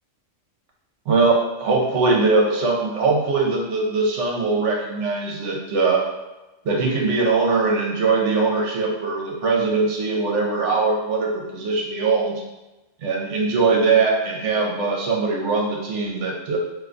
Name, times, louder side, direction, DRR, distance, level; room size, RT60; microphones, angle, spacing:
voice 1, 1.1-6.0 6.6-12.4 13.0-16.6, right 3 dB, 75° right, -1 dB, 1.0 m, -21 dB
2.6 x 2.2 x 3.7 m, 1.1 s
omnidirectional pair, 1.3 m